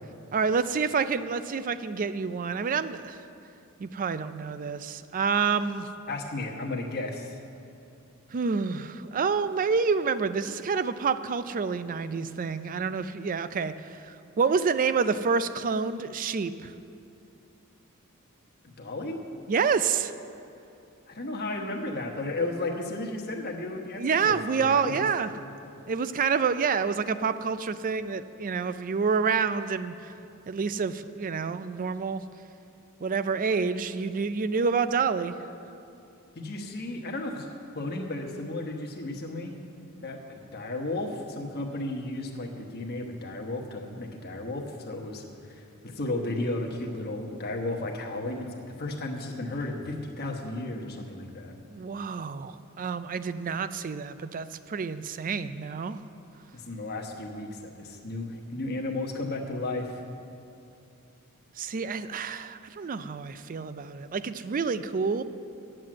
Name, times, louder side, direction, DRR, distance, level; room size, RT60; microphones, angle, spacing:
voice 1, 0.3-3.2 3.8-5.9 8.3-16.7 19.5-20.1 24.0-25.3 25.9-30.1 30.5-32.2 33.0-35.4 51.7-56.0 61.6-65.2, right 5 dB, 35° right, 13 dB, 0.4 m, -28 dB
voice 2, 6.1-7.4 18.8-19.2 21.1-25.1 36.3-37.5 37.7-39.6 40.0-51.6 56.5-59.9, left 2 dB, 45° left, 1 dB, 1.1 m, -34 dB
9.8 x 7.6 x 7.5 m, 2.6 s
head